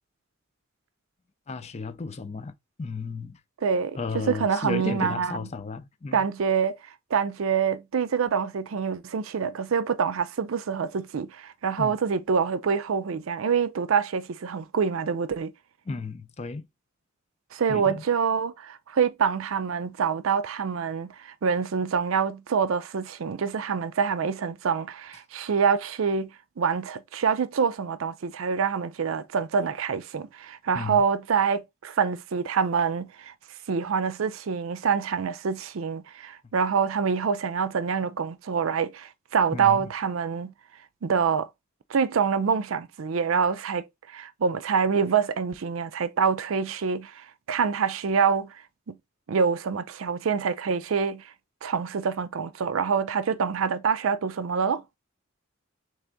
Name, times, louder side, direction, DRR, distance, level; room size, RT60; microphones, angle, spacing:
voice 1, 1.5-3.4 4.0-6.2 11.8-11.9 15.9-16.7 17.7-18.0 30.7-31.0 39.5-39.9, left 4 dB, 30° left, 0.5 m, -34 dB
voice 2, 3.6-5.5 6.1-6.8 7.1-15.5 17.5-26.3 26.6-33.3 33.7-40.5 41.0-41.5 41.9-48.6 48.9-49.0 49.3-51.2 51.6-54.8, right 6 dB, 80° right, 0.5 m, -26 dB
3.5 x 3.3 x 3.8 m
head